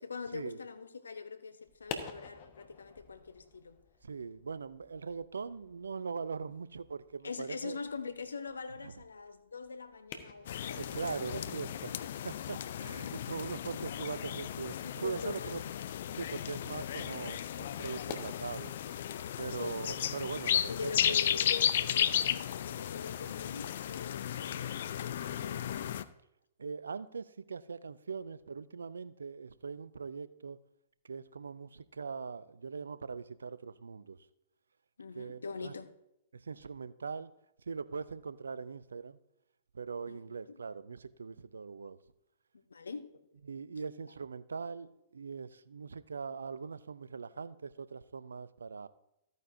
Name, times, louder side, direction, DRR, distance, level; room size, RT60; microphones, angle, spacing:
voice 1, 0.0-3.8 7.2-11.4 11.9-12.1 13.0-13.1 13.6-13.9 14.8-15.5 19.6-19.8 20.7-21.5 21.8-25.9 35.0-35.9 40.1-40.2 40.5-40.6 42.7-43.2, left 5 dB, 75° left, 0.8 m, -43 dB
sound 1, 1.6-18.3, left 6 dB, 40° left, 1.1 m, -52 dB
voice 2, 4.0-7.8 8.8-8.9 10.6-12.0 12.2-15.6 16.1-18.7 19.4-21.2 26.6-30.6 31.0-34.2 35.2-35.7 36.3-37.3 37.7-39.2 39.7-42.0 43.5-48.9, right 5 dB, 70° right, 0.4 m, -41 dB
sound 2, 10.5-26.0, left 10 dB, 55° left, 0.4 m, -34 dB
13.5 x 9.3 x 2.7 m
figure-of-eight pair, 110°, 0 cm